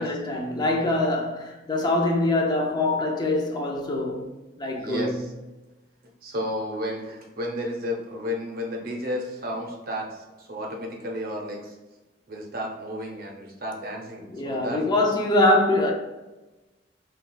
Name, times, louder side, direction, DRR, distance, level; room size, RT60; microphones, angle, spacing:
voice 1, 0.0-4.3 4.6-5.2 14.3-15.9, left 1 dB, 25° left, 0.4 m, -24 dB
voice 2, 4.8-5.3 6.2-11.8 12.3-14.8, equal, 55° right, 0.7 m, -32 dB
2.4 x 2.3 x 3.8 m
head